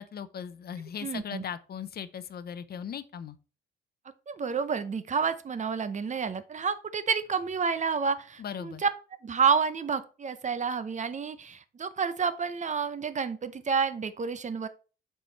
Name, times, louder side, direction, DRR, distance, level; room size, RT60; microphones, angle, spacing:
voice 1, 0.0-3.4 8.4-8.8, left 8 dB, 50° left, 0.7 m, -38 dB
voice 2, 1.0-1.4 4.3-8.9 9.2-14.7, right 6 dB, 35° right, 0.8 m, -29 dB
7.8 x 4.6 x 4.1 m
cardioid pair, 90°, 20 cm